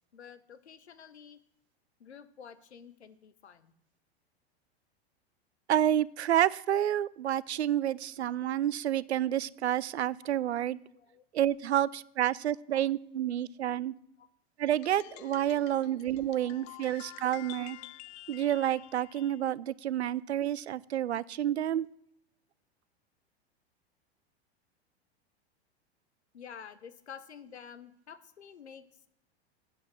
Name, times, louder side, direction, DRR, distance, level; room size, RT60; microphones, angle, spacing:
voice 1, 0.1-1.4 2.0-3.7 10.2-10.3 10.9-11.2 12.7-12.8 14.2-14.3 15.8-16.0 17.4-17.5 17.8-17.9 26.3-29.1, left 7 dB, 90° left, 13 dB, 1.0 m, -50 dB
voice 2, 5.7-10.8 11.3-13.9 14.6-17.8 18.3-21.9, right 11 dB, 90° right, 21 dB, 0.5 m, -29 dB
sound 1, 14.7-19.4, left 18 dB, 40° left, 0.4 m, -49 dB
8.1 x 7.9 x 7.6 m, 0.73 s
hypercardioid pair, 100°, 32 cm